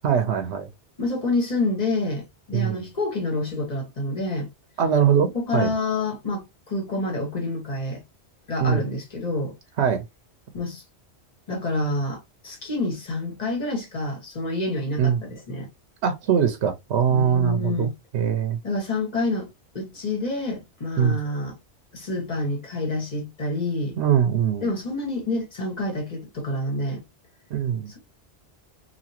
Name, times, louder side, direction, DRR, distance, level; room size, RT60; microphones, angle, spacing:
voice 1, 0.0-0.7 2.5-2.8 4.8-5.7 8.6-8.8 9.8-10.0 15.0-15.2 16.0-18.6 21.0-21.2 24.0-24.7 27.5-27.9, right 8 dB, 85° right, 0.9 m, -22 dB
voice 2, 1.0-4.5 5.3-8.0 8.5-9.6 10.5-10.8 11.5-15.7 17.1-17.9 18.6-19.5 19.7-21.6 21.9-24.0 24.6-27.0, left 2 dB, 40° left, 1.4 m, -28 dB
2.9 x 2.8 x 2.7 m
omnidirectional pair, 1.1 m